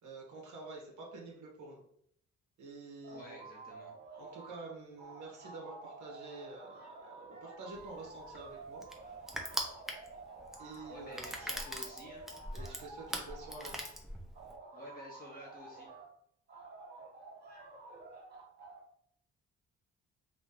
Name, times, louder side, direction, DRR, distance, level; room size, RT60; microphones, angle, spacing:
voice 1, 0.0-1.8 2.6-3.4 4.2-9.2 10.6-11.5 12.5-13.8, right 3 dB, 75° right, -2 dB, 1.2 m, -48 dB
sound 1, 3.0-4.7 5.0-13.9 14.3-16.1 16.5-18.8, right 3 dB, 35° right, 1.4 m, -51 dB
voice 2, 3.1-3.9 10.9-12.3 14.7-15.9, left 1 dB, 30° left, -3 dB, 0.9 m, -51 dB
Crushing, 7.8-14.6, equal, ahead, 0.7 m, -41 dB
3.0 x 2.7 x 3.7 m, 0.67 s
cardioid pair, 90°, 30 cm